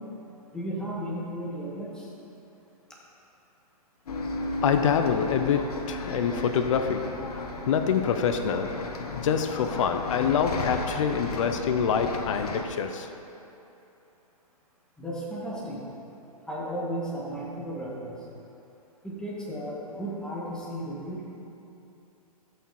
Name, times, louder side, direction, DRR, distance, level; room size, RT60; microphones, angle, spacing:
voice 1, 0.5-2.1 15.0-15.8 16.5-18.2 19.0-21.3, right 1 dB, 5° left, -5 dB, 1.9 m, -34 dB
Bus, 4.1-12.6, left 3 dB, 75° left, 1.2 m, -34 dB
voice 2, 4.6-7.1 7.7-8.8 9.1-13.1, left 7 dB, 55° left, 7 dB, 0.7 m, -26 dB
14.0 x 6.3 x 4.3 m, 2.9 s
hypercardioid pair, 125°, 20 cm